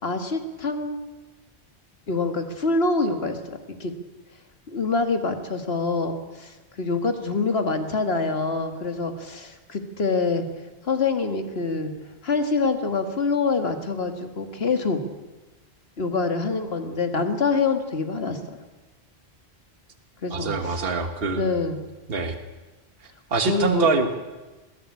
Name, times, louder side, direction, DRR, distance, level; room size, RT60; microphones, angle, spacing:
voice 1, 0.0-1.0 2.1-3.9 4.7-10.5 10.8-11.9 12.2-15.0 16.0-18.6 20.2-20.8 21.3-21.8 23.5-23.9, left 4 dB, 65° left, 7 dB, 2.2 m, -25 dB
voice 2, 20.3-21.5 22.1-22.4 23.3-24.2, right 4 dB, 60° right, 6 dB, 1.8 m, -24 dB
21.0 x 16.5 x 8.5 m, 1.2 s
omnidirectional pair, 1.1 m